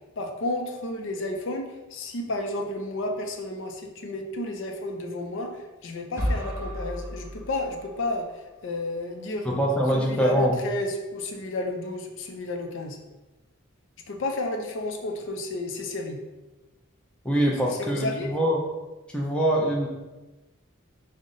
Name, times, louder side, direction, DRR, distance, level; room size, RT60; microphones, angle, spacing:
voice 1, 0.2-9.5 9.9-13.0 14.1-16.2 17.7-18.3, left 2 dB, 60° left, 3 dB, 0.5 m, -32 dB
sound 1, 6.2-8.2, equal, 10° right, 0.8 m, -32 dB
voice 2, 9.4-10.5 17.2-18.6 19.1-19.9, right 1 dB, 5° left, -3 dB, 0.5 m, -23 dB
5.2 x 2.1 x 3.7 m, 1.1 s
head